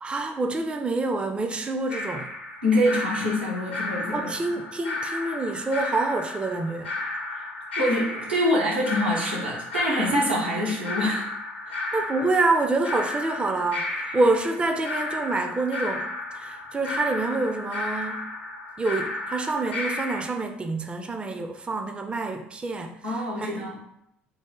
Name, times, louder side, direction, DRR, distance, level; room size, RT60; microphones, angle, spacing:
voice 1, 0.0-2.3 4.1-6.9 11.9-16.1 16.3-18.3 18.8-22.9 23.4-23.5, right 3 dB, 20° right, 5 dB, 0.4 m, -27 dB
sound 1, 1.9-20.2, left 2 dB, 90° left, 0.5 m, -33 dB
voice 2, 2.6-4.3 7.8-11.3 11.7-11.8 23.0-23.8, left 1 dB, 90° right, -5 dB, 0.9 m, -25 dB
3.1 x 2.0 x 3.7 m, 0.78 s
figure-of-eight pair, 60°, 6 cm